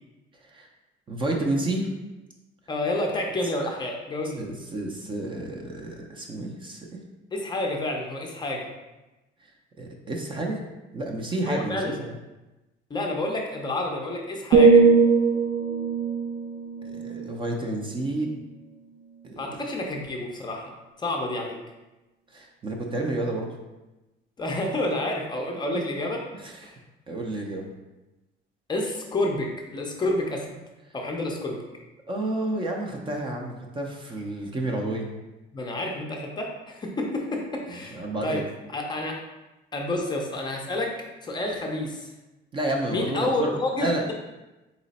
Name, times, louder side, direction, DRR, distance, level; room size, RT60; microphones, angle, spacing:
voice 1, 1.1-1.9 4.4-7.0 9.8-10.6 10.9-12.1 16.8-18.3 19.2-19.5 22.3-23.5 26.3-26.7 27.1-27.7 32.1-35.1 37.9-38.4 42.5-43.5 43.8-44.1, right 2 dB, 25° right, 1 dB, 0.5 m, -30 dB
voice 2, 2.7-4.4 7.3-8.7 11.5-12.0 12.9-14.8 19.4-20.7 21.0-21.6 24.4-26.2 26.6-26.7 28.7-30.6 30.9-31.6 35.5-38.4 38.7-39.2 39.7-40.9 41.2-42.1 42.9-44.1, left 2 dB, 20° left, 1 dB, 0.5 m, -29 dB
sound 1, 14.5-18.5 18.9-19.2, right 4 dB, 85° right, 0.7 m, -21 dB
4.0 x 3.0 x 4.1 m, 1.1 s
cardioid pair, 155°, 20 cm